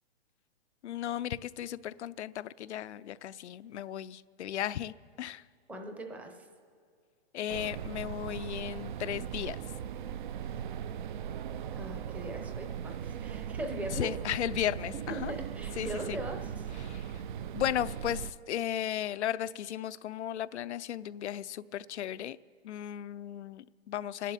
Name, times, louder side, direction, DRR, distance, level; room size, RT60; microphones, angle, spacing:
voice 1, 0.8-5.4 7.3-9.6 14.0-15.3 15.8-16.2 16.8-17.2 17.5-22.4 22.6-24.3, left 11 dB, 85° left, 17 dB, 0.5 m, -35 dB
voice 2, 5.7-6.5 11.7-14.1 15.1-16.7, right 2 dB, 5° right, 4 dB, 0.6 m, -40 dB
sound 1, 7.5-18.3, right 8 dB, 50° right, 0.5 m, -39 dB
29.0 x 11.0 x 4.2 m, 2.2 s
hypercardioid pair, 155°, 33 cm